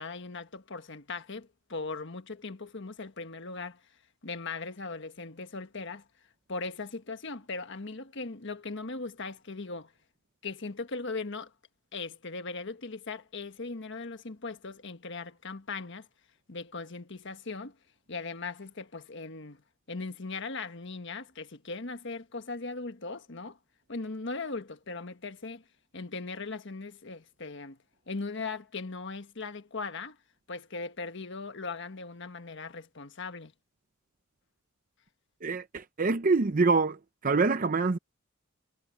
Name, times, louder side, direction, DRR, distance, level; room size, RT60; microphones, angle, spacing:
voice 1, 0.0-3.8 4.2-6.1 6.5-9.9 10.4-11.5 11.9-16.1 16.5-17.8 18.1-19.6 19.9-23.6 23.9-25.6 25.9-27.8 28.1-30.2 30.5-33.5, left 3 dB, 60° left, 1.5 m, -39 dB
voice 2, 35.4-37.0 37.2-38.0, right 4 dB, 40° right, 0.6 m, -25 dB
head